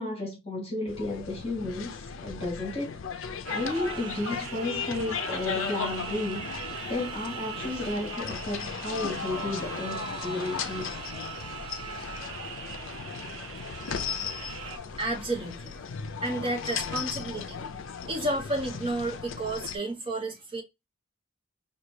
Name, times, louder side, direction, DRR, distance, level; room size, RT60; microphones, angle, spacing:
voice 1, 0.0-1.9 2.2-3.0 3.5-10.9, left 2 dB, 30° left, 1.8 m, -33 dB
sound 1, 0.9-19.8, left 6 dB, 65° left, 0.4 m, -36 dB
sound 2, 3.5-14.8, right 6 dB, 75° right, 0.7 m, -40 dB
voice 2, 14.7-15.8 16.2-17.6 18.0-20.6, right 2 dB, 25° right, 1.0 m, -31 dB
5.6 x 2.2 x 3.2 m
head